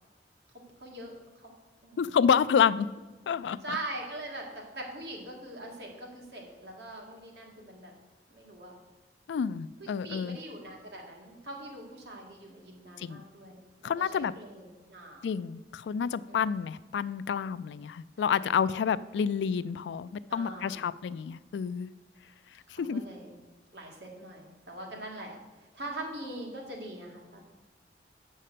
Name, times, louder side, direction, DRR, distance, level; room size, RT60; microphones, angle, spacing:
voice 1, 0.5-1.5 1.8-2.1 3.6-4.4 4.7-7.9 8.3-8.7 9.8-15.3 16.3-16.5 18.2-18.8 20.3-20.9 22.7-23.3 23.7-27.4, right 1 dB, 75° right, 0 dB, 1.9 m, -43 dB
voice 2, 2.0-2.9 3.3-3.8 9.3-10.4 13.0-13.2 13.8-14.3 15.2-21.9 22.8-23.0, left 7 dB, 80° left, 17 dB, 0.3 m, -29 dB
7.4 x 5.5 x 6.7 m, 1.2 s
head